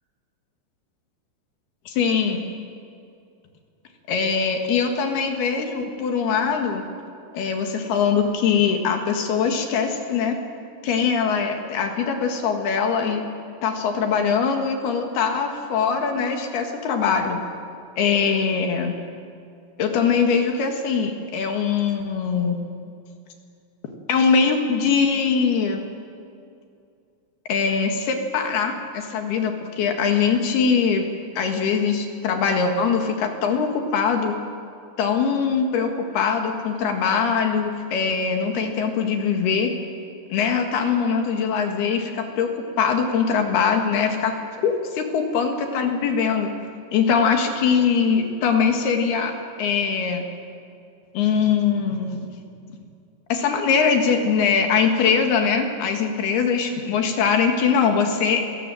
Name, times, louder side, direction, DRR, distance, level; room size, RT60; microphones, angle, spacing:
voice 1, 1.9-2.4 4.1-6.8 7.3-10.4 10.8-13.3 13.6-17.4 18.0-19.0 19.8-22.6 24.1-25.9 27.5-31.1 31.4-34.3 35.0-39.7 40.3-42.5 42.8-44.3 44.6-46.5 46.9-49.3 49.6-50.2 51.2-52.3 53.3-58.4, left 6 dB, 65° left, 4 dB, 3.5 m, -22 dB
27.5 x 18.0 x 7.7 m, 2.4 s
omnidirectional pair, 5.2 m